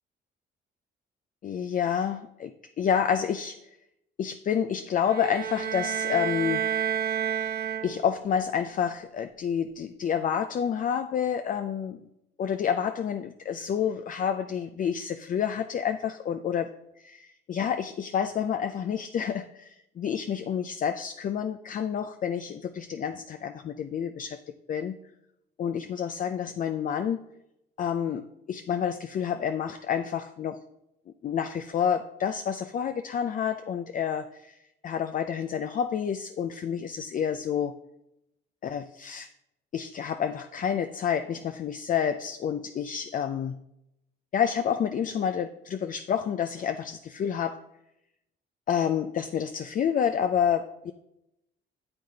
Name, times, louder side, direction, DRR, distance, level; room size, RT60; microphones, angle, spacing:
voice 1, 1.4-3.6 4.2-6.6 7.8-12.0 12.4-16.7 17.0-24.4 24.7-25.0 25.6-27.2 27.8-30.6 31.2-34.6 34.8-37.8 38.6-39.3 39.7-43.6 44.3-47.6 48.7-50.9, left 8 dB, 45° left, 8 dB, 0.4 m, -29 dB
sound 1, 5.1-8.3, right 9 dB, 50° right, 0.8 m, -30 dB
8.6 x 7.7 x 2.8 m, 0.84 s
cardioid pair, 90°, 20 cm